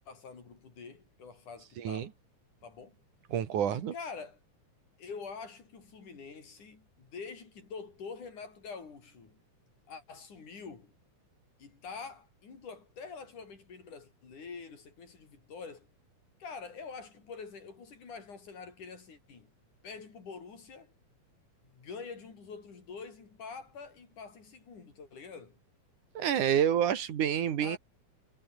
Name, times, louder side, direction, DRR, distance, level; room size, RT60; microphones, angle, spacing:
voice 1, 0.0-2.1 2.6-3.0 3.7-4.4 5.0-9.4 9.9-10.9 11.6-15.9 16.4-19.5 19.8-20.9 21.6-25.6 27.6-27.8, left 5 dB, 80° left, 6.3 m, -46 dB
voice 2, 1.8-2.1 3.3-3.9 26.2-27.8, right 9 dB, 85° right, 3.5 m, -28 dB
omnidirectional pair, 3.5 m